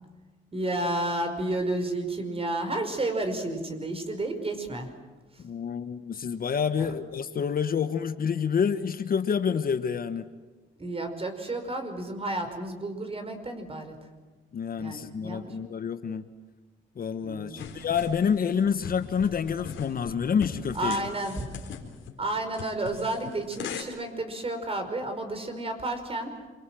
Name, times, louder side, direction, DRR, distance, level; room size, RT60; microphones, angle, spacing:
voice 1, 0.5-4.9 6.8-6.9 10.8-14.0 14.8-15.5 17.2-17.7 20.8-21.5 22.2-26.3, right 2 dB, 30° right, 6 dB, 5.3 m, -31 dB
voice 2, 5.4-10.3 14.5-16.2 17.0-21.0, left 7 dB, 50° left, 10 dB, 1.2 m, -28 dB
sound 1, 17.6-23.8, left 7 dB, 75° left, 4.2 m, -40 dB
27.5 x 23.5 x 7.7 m, 1.3 s
cardioid pair, 90°, 20 cm